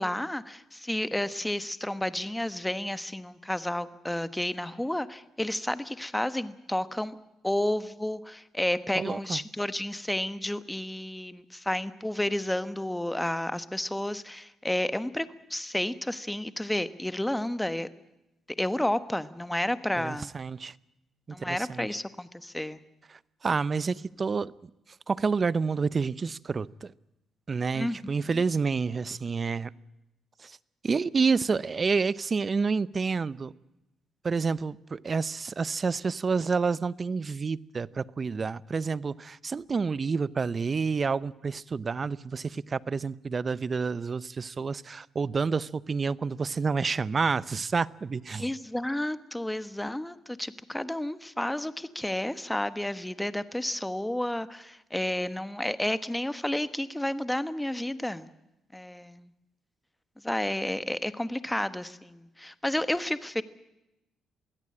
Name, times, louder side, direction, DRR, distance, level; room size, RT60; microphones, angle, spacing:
voice 1, 0.0-7.2 7.4-17.9 18.6-20.3 21.3-22.8 27.7-28.0 28.3-28.4 48.4-58.3 58.7-59.3 60.2-63.4, left 1 dB, 5° left, 1.3 m, -31 dB
voice 2, 9.0-9.4 20.0-20.7 21.4-21.9 23.1-24.5 25.1-26.9 27.5-29.7 30.4-30.6 30.8-33.5 34.2-48.5, right 5 dB, 35° right, 0.7 m, -29 dB
23.0 x 16.5 x 8.7 m
cardioid pair, 90°, 0 cm